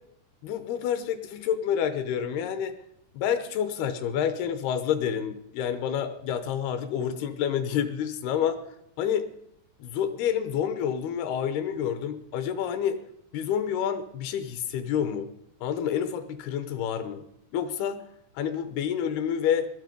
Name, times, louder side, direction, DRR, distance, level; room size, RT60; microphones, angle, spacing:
voice 1, 0.4-2.7 3.1-8.6 9.0-9.3 9.8-13.0 13.3-15.3 15.6-17.2 17.5-18.0 18.4-19.7, left 8 dB, 75° left, 11 dB, 2.8 m, -28 dB
17.5 x 12.5 x 5.3 m, 0.75 s
omnidirectional pair, 4.8 m